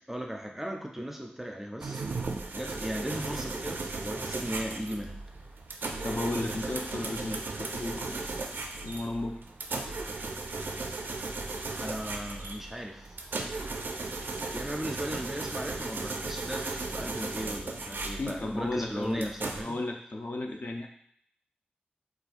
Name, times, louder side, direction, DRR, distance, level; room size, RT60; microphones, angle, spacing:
voice 1, 0.1-5.2 11.8-13.2 14.5-19.8, equal, 10° right, 2 dB, 0.4 m, -37 dB
sound 1, 1.8-19.6, right 3 dB, 80° right, 0.4 m, -36 dB
voice 2, 6.0-8.2 8.8-9.4 18.2-19.3 19.6-20.9, left 2 dB, 55° left, 2 dB, 0.5 m, -34 dB
4.1 x 2.3 x 2.5 m, 0.66 s
wide cardioid pair, 85°, 3 cm